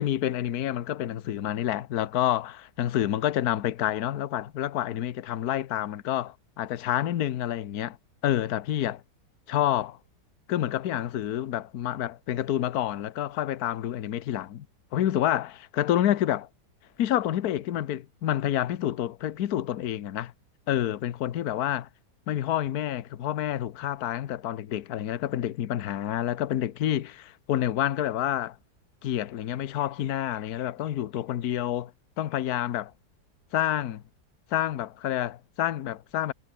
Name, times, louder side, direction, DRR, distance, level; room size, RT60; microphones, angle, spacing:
voice 1, 0.0-8.0 8.2-9.0 9.5-10.0 10.5-14.6 14.9-16.5 17.0-20.3 20.7-21.9 22.3-28.6 29.0-31.9 32.2-32.9 33.5-34.0 34.5-36.3, left 12 dB, 65° left, 1.4 m, -28 dB
omnidirectional pair, 1.8 m